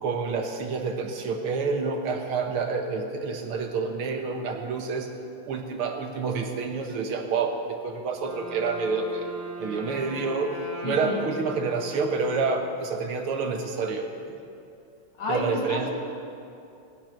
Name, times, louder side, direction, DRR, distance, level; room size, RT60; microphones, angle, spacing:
voice 1, 0.0-5.1 5.4-9.3 9.6-14.4 15.3-15.9, right 4 dB, 80° right, 3 dB, 2.1 m, -28 dB
Wind instrument woodwind instrument, 8.0-12.9, right 1 dB, 50° right, 2.6 m, -39 dB
voice 2, 10.8-11.3 15.2-15.9, left 2 dB, 60° left, -1 dB, 2.4 m, -30 dB
16.5 x 11.0 x 5.8 m, 2.6 s
omnidirectional pair, 2.4 m